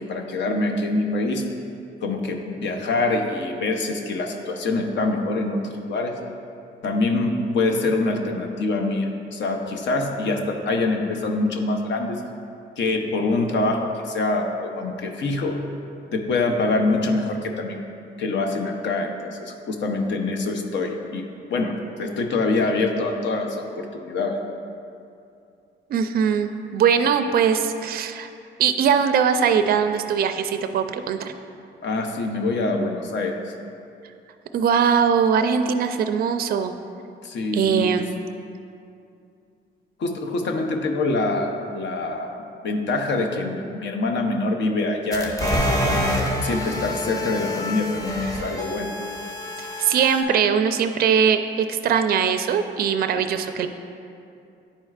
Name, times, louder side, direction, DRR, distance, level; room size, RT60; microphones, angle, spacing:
voice 1, 0.0-1.4 2.0-6.1 6.8-12.2 12.8-15.6 16.1-17.8 18.2-24.4 31.8-33.5 37.2-37.9 40.0-42.4 42.6-46.1 46.4-48.9, left 2 dB, 65° left, 3 dB, 0.7 m, -25 dB
voice 2, 25.9-28.3 28.6-31.3 34.5-36.7 37.5-38.1 49.8-53.7, right 7 dB, 50° right, 8 dB, 0.4 m, -21 dB
sound 1, 45.1-50.2, equal, 15° left, 1.0 m, -27 dB
9.8 x 4.4 x 2.4 m, 2.5 s
cardioid pair, 90°, 20 cm